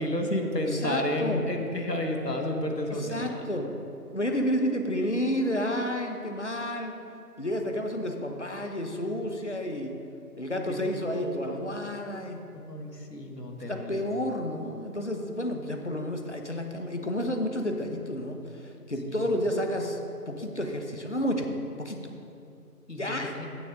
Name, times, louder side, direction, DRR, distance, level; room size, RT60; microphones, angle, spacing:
voice 1, 0.0-3.4 9.0-9.1 9.6-9.8 10.5-11.7 12.5-14.0 19.1-19.2 22.9-23.5, left 1 dB, 85° left, 2 dB, 1.6 m, -32 dB
voice 2, 0.6-1.4 2.9-3.7 4.1-7.0 7.4-9.9 10.4-12.4 13.7-20.0 20.3-22.1 23.0-23.4, equal, 45° left, 3 dB, 1.0 m, -31 dB
15.5 x 6.6 x 3.8 m, 2.7 s
figure-of-eight pair, 170°, 47 cm